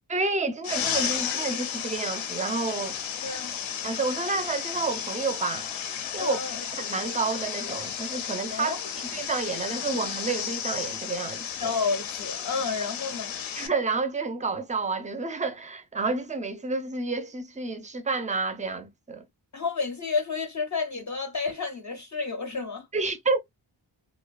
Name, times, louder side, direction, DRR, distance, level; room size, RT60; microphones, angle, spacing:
voice 1, 0.1-3.0 3.8-5.7 6.1-6.4 6.8-8.8 9.1-11.7 13.6-19.2 22.9-23.4, right 3 dB, 15° right, 0.4 m, -29 dB
sound 1, 0.6-13.7, left 8 dB, 85° left, 0.6 m, -33 dB
voice 2, 3.2-3.6 6.2-6.6 8.5-8.9 11.6-13.3 19.5-23.1, left 4 dB, 40° left, 0.5 m, -31 dB
2.6 x 2.1 x 2.3 m
wide cardioid pair, 70°, 46 cm